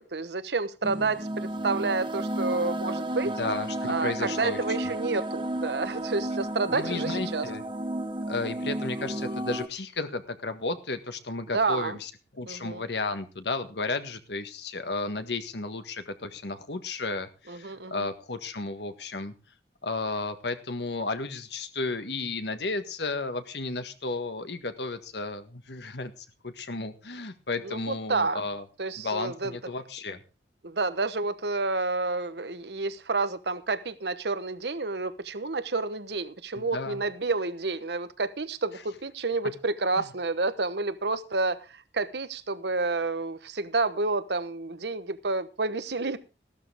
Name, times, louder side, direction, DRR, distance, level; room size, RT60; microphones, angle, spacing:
voice 1, 0.0-3.4 3.9-7.5 11.5-12.0 12.5-12.9 17.5-18.1 27.6-28.4 28.8-29.5 30.6-46.2, right 3 dB, 70° right, 13 dB, 1.1 m, -29 dB
sound 1, 0.8-9.7, right 1 dB, 30° right, 1.2 m, -32 dB
voice 2, 3.4-4.6 6.7-7.6 8.3-19.3 19.8-28.6 29.0-30.2 36.6-37.0 40.0-40.1, left 3 dB, 70° left, 9 dB, 1.7 m, -33 dB
15.5 x 12.5 x 3.5 m, 0.34 s
head